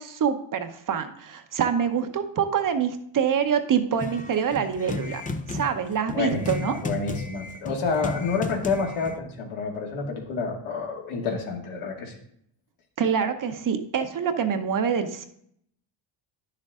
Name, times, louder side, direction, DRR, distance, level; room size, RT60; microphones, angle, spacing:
voice 1, 0.0-5.2 5.5-6.8 13.0-15.3, right 7 dB, 40° right, 8 dB, 0.8 m, -25 dB
sound 1, 4.0-9.2, left 3 dB, 20° left, 0.4 m, -34 dB
voice 2, 6.1-12.1, left 4 dB, 80° left, 0 dB, 2.3 m, -29 dB
10.0 x 6.6 x 3.6 m, 0.67 s
cardioid pair, 135°, 49 cm